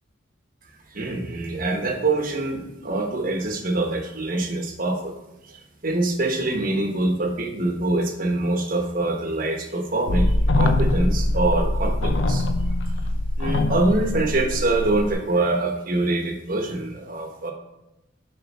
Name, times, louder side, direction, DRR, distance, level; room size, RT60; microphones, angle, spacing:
voice 1, 0.9-5.1 5.5-12.4 13.4-17.5, right 2 dB, 50° right, 3 dB, 1.2 m, -25 dB
sound 1, 10.1-15.1, left 1 dB, 80° left, 0.6 m, -22 dB
6.9 x 5.5 x 4.2 m, 0.94 s
head